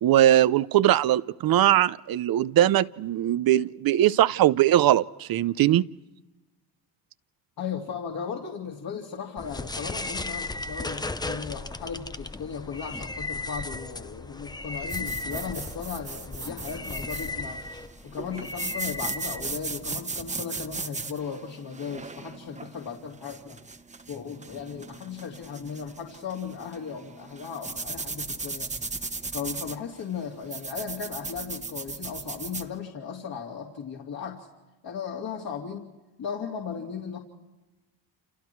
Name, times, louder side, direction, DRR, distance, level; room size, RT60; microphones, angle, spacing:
voice 1, 0.0-5.8, right 12 dB, 60° right, 0.7 m, -21 dB
voice 2, 7.6-17.6 18.0-23.6 24.1-28.7 29.3-34.5 34.8-35.9 36.2-37.2, left 6 dB, 60° left, 3.1 m, -36 dB
sound 1, 9.4-20.0, left 3 dB, 10° left, 0.7 m, -36 dB
sound 2, 14.9-32.7, right 3 dB, 15° right, 1.2 m, -37 dB
29.5 x 29.0 x 4.6 m
cardioid pair, 120°, 41 cm